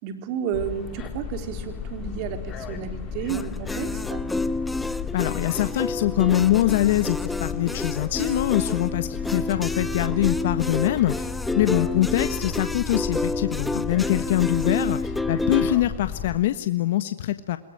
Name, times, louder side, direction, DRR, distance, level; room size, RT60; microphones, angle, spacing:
voice 1, 0.0-4.3, right 8 dB, 40° right, 8 dB, 4.2 m, -32 dB
sound 1, 0.5-16.4, left 6 dB, 25° left, 3.1 m, -34 dB
sound 2, 3.3-15.8, left 2 dB, 5° left, 0.8 m, -29 dB
voice 2, 5.1-11.3 11.5-17.6, left 14 dB, 55° left, 11 dB, 1.3 m, -24 dB
28.5 x 21.5 x 9.1 m, 1.0 s
hypercardioid pair, 125°, 0 cm